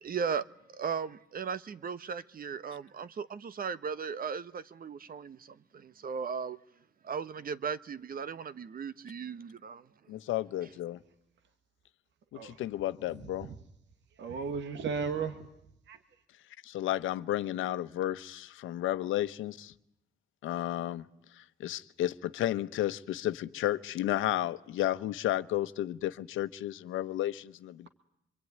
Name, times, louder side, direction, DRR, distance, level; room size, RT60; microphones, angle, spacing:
voice 1, 0.0-6.6 7.0-9.9, right 6 dB, 45° right, 1.2 m, -37 dB
voice 2, 10.1-11.0 12.3-13.5 16.6-19.7 20.4-21.1 21.4-27.9, left 13 dB, 85° left, 1.1 m, -32 dB
voice 3, 14.2-15.5 15.9-16.0, right 5 dB, 65° right, 1.9 m, -35 dB
26.0 x 24.0 x 9.6 m
cardioid pair, 90°, 20 cm